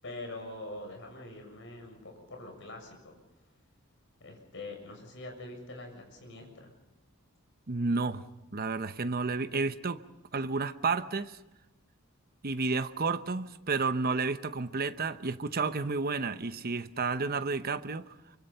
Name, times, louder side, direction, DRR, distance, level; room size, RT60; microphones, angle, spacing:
voice 1, 0.0-3.1 4.2-6.7, left 2 dB, 60° left, 7.1 m, -44 dB
voice 2, 7.7-8.3 8.5-10.0 10.3-11.4 12.4-18.1, right 4 dB, 45° right, 0.9 m, -31 dB
24.5 x 24.5 x 5.6 m
head